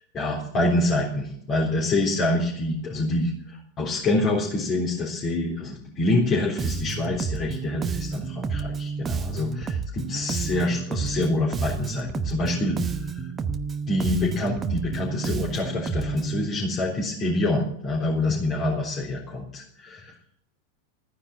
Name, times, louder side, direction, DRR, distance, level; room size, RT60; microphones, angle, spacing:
voice 1, 0.0-13.2 13.9-20.2, left 2 dB, 25° left, -4 dB, 3.8 m, -26 dB
Bass guitar, 6.6-16.5, right 5 dB, 20° right, 1.0 m, -30 dB
15.0 x 9.9 x 7.5 m, 0.67 s
figure-of-eight pair, 90°, 0 cm